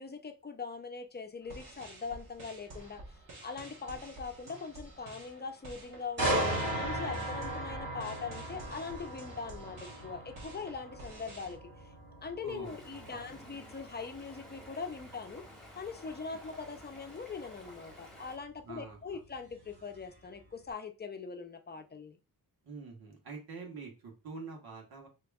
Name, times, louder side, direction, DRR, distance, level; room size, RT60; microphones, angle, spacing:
voice 1, 0.0-3.0 3.4-6.4 6.7-11.6 12.2-15.4 15.8-22.2, left 5 dB, 30° left, 0.5 m, -42 dB
sound 1, 1.4-11.5, right 2 dB, 60° right, 1.4 m, -50 dB
sound 2, 6.2-20.0 20.4-20.7, right 1 dB, 30° right, 2.3 m, -38 dB
voice 2, 12.4-13.3 18.6-19.2 22.6-25.1, right 4 dB, 85° right, 1.5 m, -46 dB
Stream, 12.6-18.4, equal, ahead, 1.3 m, -53 dB
4.9 x 3.0 x 2.3 m
wide cardioid pair, 120°, 36 cm